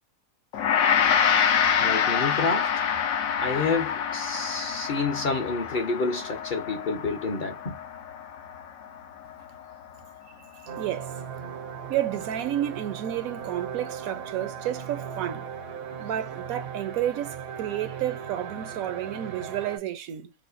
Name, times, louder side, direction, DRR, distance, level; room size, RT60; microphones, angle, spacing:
Gong, 0.5-9.9, left 7 dB, 75° left, 1.1 m, -26 dB
voice 1, 1.8-2.7 3.4-7.8, left 4 dB, 40° left, 0.8 m, -29 dB
voice 2, 10.5-11.2 11.9-15.5 16.0-20.3, right 11 dB, 80° right, 1.1 m, -31 dB
sound 1, 10.7-19.8, right 7 dB, 55° right, 0.7 m, -38 dB
4.8 x 2.1 x 2.5 m
omnidirectional pair, 1.5 m